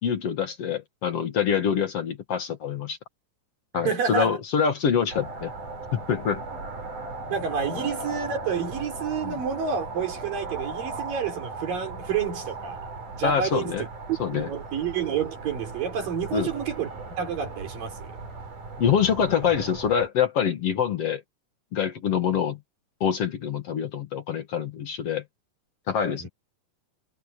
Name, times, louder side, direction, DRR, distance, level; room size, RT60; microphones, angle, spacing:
voice 1, 0.0-3.0 3.7-5.5 5.9-6.4 9.2-9.3 13.2-13.8 14.2-14.5 16.3-16.5 18.8-21.2 21.7-22.6 23.0-25.2 25.9-26.3, left 7 dB, 50° left, 2.4 m, -25 dB
voice 2, 3.7-4.4 7.3-12.9 13.1-16.9 17.2-18.1 26.2-26.3, right 7 dB, 80° right, 5.6 m, -29 dB
sound 1, 5.1-20.1, right 3 dB, 65° right, 6.7 m, -37 dB
omnidirectional pair, 3.9 m